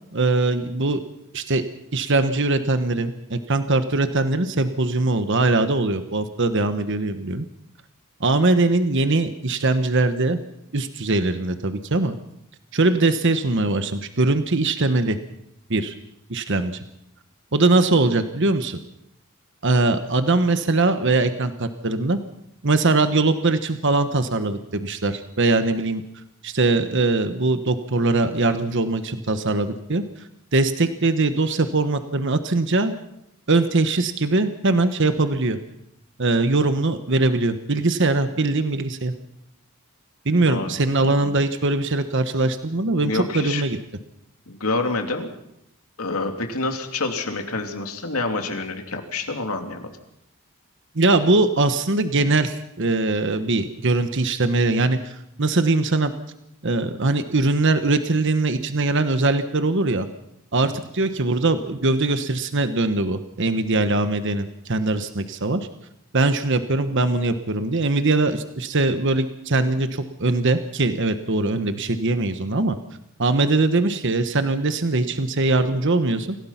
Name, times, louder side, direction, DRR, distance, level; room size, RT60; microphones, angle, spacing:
voice 1, 0.1-1.0 1.3-1.6 1.9-7.5 8.2-10.4 10.7-12.1 12.7-15.2 15.7-15.9 16.3-16.8 17.5-18.8 19.6-22.2 22.6-26.0 26.4-32.9 33.5-35.6 36.2-39.1 40.2-43.8 50.9-56.1 56.6-60.1 60.5-65.7 66.1-72.8 73.2-76.4, right 2 dB, 55° right, 9 dB, 1.2 m, -21 dB
voice 2, 43.0-43.6 44.5-45.3 46.0-49.9, left 3 dB, 85° left, 4 dB, 2.9 m, -27 dB
26.5 x 16.5 x 5.9 m, 0.80 s
head